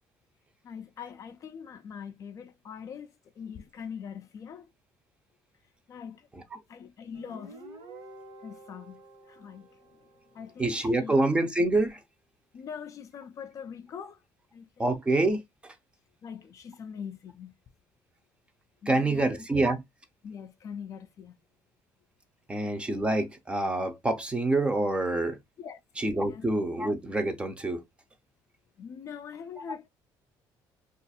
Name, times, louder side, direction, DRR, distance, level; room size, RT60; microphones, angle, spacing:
voice 1, 0.6-4.7 5.9-6.3 6.7-7.6 8.4-11.1 12.5-14.2 14.5-15.0 16.2-17.5 18.8-19.4 20.2-21.4 25.6-25.8 26.2-26.5 28.8-29.9, left 7 dB, 40° left, 0.4 m, -43 dB
Guitar, 7.1-10.6, right 2 dB, 65° right, 1.2 m, -49 dB
voice 2, 10.6-12.0 14.8-15.7 18.9-19.8 22.5-25.4 26.0-27.8, right 2 dB, 15° right, 0.5 m, -26 dB
2.5 x 2.4 x 4.1 m
cardioid pair, 140°, 8 cm